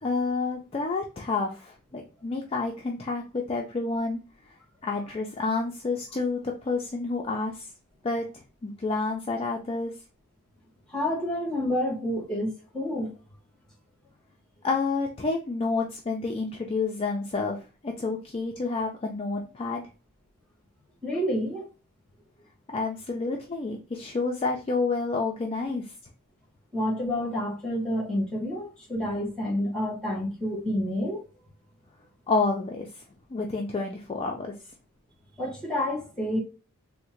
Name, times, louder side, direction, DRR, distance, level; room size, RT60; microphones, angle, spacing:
voice 1, 0.0-4.2 4.8-7.7 8.0-9.9 14.6-19.8 22.7-25.9 32.3-33.0 33.3-34.5, left 3 dB, 25° left, 0.3 m, -29 dB
voice 2, 10.9-13.1 21.0-21.7 26.7-31.3 35.4-36.4, left 1 dB, 5° left, 1.2 m, -29 dB
3.6 x 2.1 x 2.9 m
head